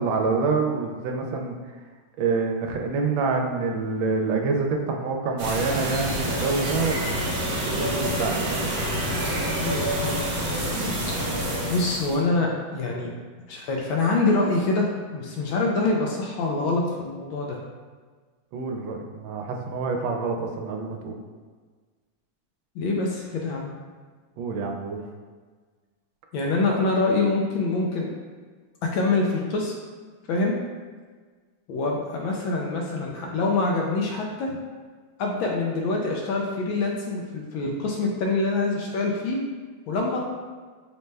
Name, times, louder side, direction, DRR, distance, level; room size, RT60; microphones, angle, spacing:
voice 1, 0.0-1.5 2.2-7.4 7.6-8.7 18.5-21.1 24.4-25.0, right 4 dB, 80° right, 3 dB, 1.3 m, -27 dB
sound 1, 5.4-12.2, right 1 dB, 55° right, 1.2 m, -27 dB
voice 2, 9.6-10.9 11.2-13.1 13.5-17.6 22.7-23.7 26.3-28.1 28.8-29.7 30.3-30.6 31.7-34.5 35.2-39.4 39.9-40.2, left 3 dB, 80° left, -1 dB, 1.3 m, -25 dB
5.4 x 2.2 x 3.2 m, 1.5 s
omnidirectional pair, 2.2 m